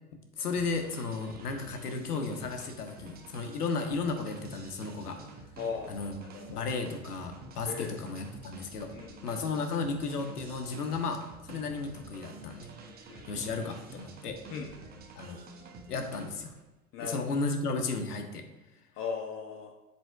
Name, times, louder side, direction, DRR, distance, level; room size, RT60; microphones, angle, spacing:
voice 1, 0.4-5.2 5.9-6.2 6.5-8.9 9.2-12.7 13.3-14.4 15.2-15.4 15.9-16.5 17.0-18.4, left 4 dB, 80° left, 5 dB, 1.2 m, -34 dB
sound 1, 0.5-16.7, right 3 dB, 20° right, 0.9 m, -49 dB
voice 2, 5.6-6.7 7.6-8.0 8.9-9.3 13.1-13.3 14.5-14.7 16.9-17.3 19.0-19.7, left 5 dB, 30° left, 3 dB, 0.8 m, -38 dB
7.5 x 7.4 x 2.3 m, 1.0 s
hypercardioid pair, 105°, 45 cm